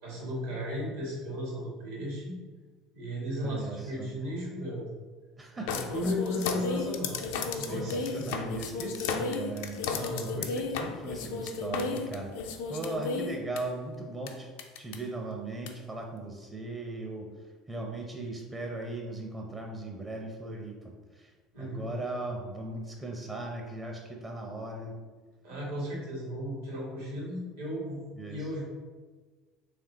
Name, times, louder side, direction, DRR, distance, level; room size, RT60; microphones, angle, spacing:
voice 1, 0.0-2.4 2.9-4.9 5.5-7.3 7.5-8.4 9.9-10.4 21.5-21.9 25.4-28.6, equal, 75° right, -5 dB, 1.5 m, -35 dB
voice 2, 3.4-4.1 5.4-6.1 7.6-9.8 10.3-14.5 14.8-17.3 17.7-21.3 21.6-25.0 28.2-28.5, right 2 dB, 20° right, 1 dB, 0.5 m, -38 dB
sound 1, 5.7-13.6 14.3-14.4 14.6-15.0 15.7-15.8, left 4 dB, 65° left, 0.3 m, -33 dB
3.4 x 3.3 x 2.8 m, 1.4 s
figure-of-eight pair, 65°, 0 cm